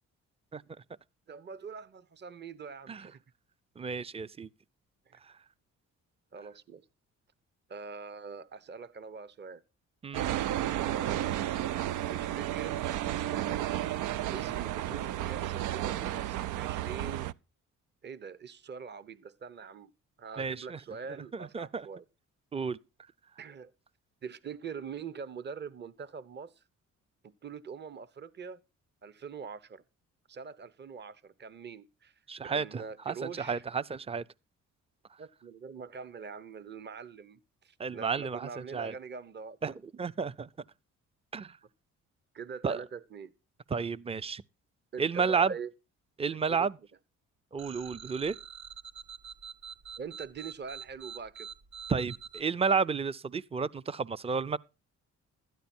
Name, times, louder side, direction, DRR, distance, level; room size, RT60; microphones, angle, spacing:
voice 1, 1.3-3.2 5.1-5.2 6.3-6.8 7.7-9.6 10.8-11.7 12.1-12.9 13.3-13.8 14.3-17.3 18.0-19.9 20.2-22.0 23.4-23.7 24.2-26.6 27.2-28.6 29.0-29.8 30.3-32.1 32.4-33.6 35.2-39.7 42.3-43.3 44.9-45.7 46.3-46.7 50.0-51.5, right 6 dB, 35° right, 0.9 m, -43 dB
voice 2, 3.8-4.5 10.0-10.3 20.4-20.8 21.3-21.9 22.5-22.8 32.3-34.2 37.8-38.9 39.6-39.7 40.0-40.5 41.3-41.5 42.6-42.8 43.7-44.4 45.0-45.5 46.2-46.8 47.5-48.3 51.9-54.6, right 5 dB, 20° right, 0.6 m, -31 dB
sound 1, 10.1-17.3, right 12 dB, 85° right, 0.6 m, -32 dB
sound 2, 47.6-52.4, right 7 dB, 65° right, 2.2 m, -45 dB
13.0 x 10.5 x 4.4 m
cardioid pair, 90°, 30 cm